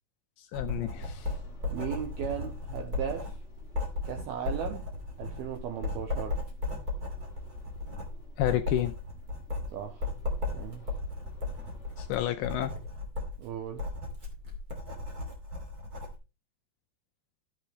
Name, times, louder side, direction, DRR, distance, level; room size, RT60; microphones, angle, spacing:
voice 1, 0.4-1.3 8.4-8.9 12.0-12.7, left 14 dB, 85° left, 2.5 m, -30 dB
Writing, 0.5-16.2, left 2 dB, 25° right, 2.2 m, -36 dB
sound 1, 1.1-12.1, left 2 dB, 30° left, 1.3 m, -55 dB
voice 2, 1.7-3.4 4.1-4.9 5.2-6.4 9.7-10.1 10.5-10.9 13.4-13.9, right 9 dB, 90° right, 2.2 m, -37 dB
14.0 x 7.9 x 3.2 m
omnidirectional pair, 5.6 m